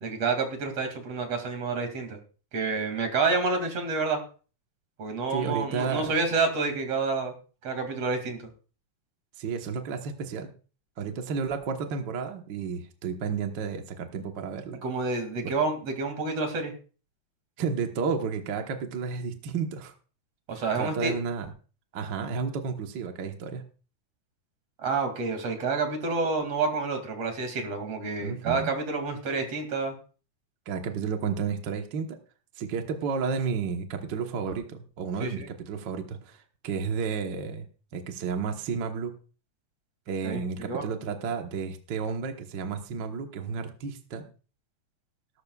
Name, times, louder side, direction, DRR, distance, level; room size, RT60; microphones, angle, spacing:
voice 1, 0.0-2.2 2.5-4.2 5.0-7.3 7.6-8.5 14.8-16.7 20.5-21.1 24.8-30.0 35.2-35.5 40.2-40.4 40.7-40.8, right 4 dB, 45° right, 5 dB, 3.4 m, -28 dB
voice 2, 5.3-6.1 9.4-10.5 11.0-14.8 15.4-15.5 17.6-19.9 20.7-21.5 21.9-23.6 28.2-28.7 30.7-32.2 32.6-37.7 37.9-39.1 40.1-44.2, right 5 dB, 70° right, 4 dB, 1.0 m, -32 dB
18.5 x 12.0 x 2.4 m, 0.37 s
omnidirectional pair, 4.0 m